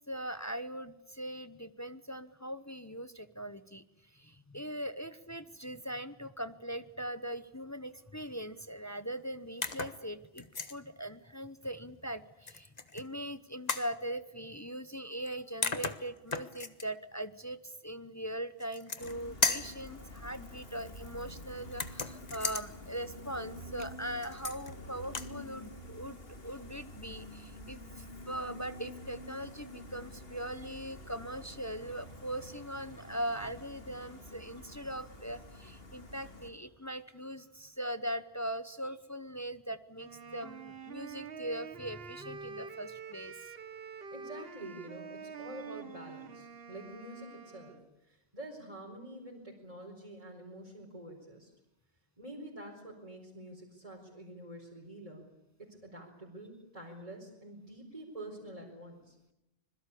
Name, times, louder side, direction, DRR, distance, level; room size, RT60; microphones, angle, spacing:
voice 1, 0.1-3.8 4.1-43.3, right 1 dB, 15° left, 12 dB, 0.9 m, -40 dB
sound 1, 9.6-10.0 10.4-10.8 12.5-13.0 13.7-13.9 15.3-15.4 15.6-16.9 18.6-19.2 19.4-19.8 21.7-22.7 24.2-24.7 25.0-25.3, left 4 dB, 40° left, 1.4 m, -34 dB
Gull seagull, 19.0-36.5, left 1 dB, 65° left, 3.1 m, -48 dB
Wind instrument woodwind instrument, 40.0-47.9, right 6 dB, 65° right, 1.4 m, -46 dB
voice 2, 44.1-47.8 48.0-51.5 52.2-55.3 55.6-59.2, right 1 dB, 35° right, -2 dB, 4.8 m, -47 dB
26.0 x 22.0 x 8.5 m, 0.90 s
omnidirectional pair, 1.1 m